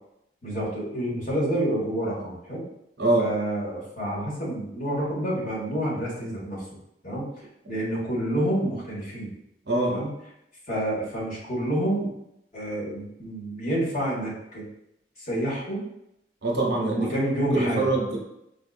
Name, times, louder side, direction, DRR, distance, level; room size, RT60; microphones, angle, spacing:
voice 1, 0.4-2.6 3.2-6.6 7.0-7.2 7.7-9.3 9.9-10.1 10.7-12.1 12.5-14.6 15.2-15.8 16.8-17.9, right 1 dB, 45° left, -7 dB, 1.5 m, -28 dB
voice 2, 16.4-17.1 17.5-18.2, right 2 dB, 70° right, -1 dB, 0.8 m, -23 dB
4.8 x 2.5 x 2.5 m, 0.81 s
head